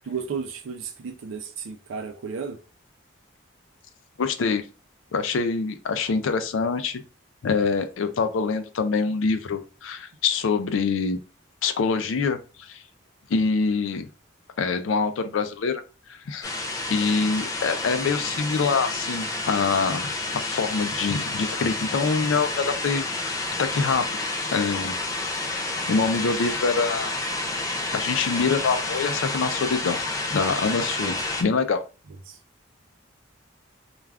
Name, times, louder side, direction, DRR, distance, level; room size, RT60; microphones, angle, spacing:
voice 1, 0.1-2.6 31.0-31.2 32.3-32.4, right 6 dB, 85° right, 0.4 m, -33 dB
voice 2, 4.2-4.6 5.1-7.0 7.4-11.2 11.6-12.8 13.3-14.1 14.6-15.8 16.1-16.6 16.9-22.5 22.8-23.3 23.6-24.0 24.5-25.4 25.9-27.1 27.9-30.0 30.3-31.8, left 4 dB, 80° left, 0.4 m, -25 dB
sound 1, 16.4-31.4, left 2 dB, 20° left, 0.3 m, -29 dB
2.3 x 2.3 x 3.3 m
head